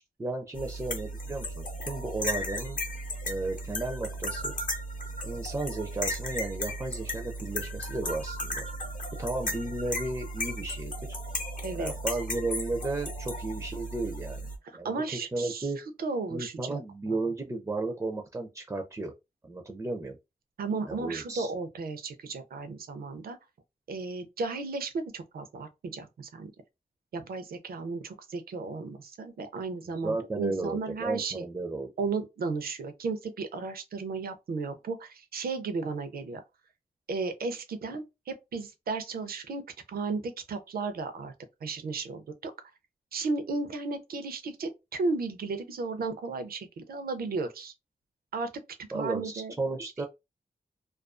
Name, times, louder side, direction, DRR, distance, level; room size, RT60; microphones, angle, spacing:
voice 1, 0.0-2.8 3.3-4.5 5.2-8.6 9.2-11.2 11.8-14.5 14.8-15.8 16.3-19.1 19.4-20.2 20.9-21.5 29.8-31.9 48.9-50.0, right 2 dB, 20° right, 0.4 m, -34 dB
sound 1, 0.5-14.6, equal, 60° left, 0.7 m, -35 dB
voice 2, 11.6-11.9 14.8-15.7 16.0-16.8 17.1-17.2 20.6-23.4 23.9-26.5 27.1-31.5 32.0-36.4 37.1-39.6 39.9-41.3 41.6-42.5 43.1-47.7 48.3-48.5 48.9-49.5, right 4 dB, 80° right, 0.5 m, -34 dB
2.4 x 2.3 x 2.4 m
wide cardioid pair, 110°, 15 cm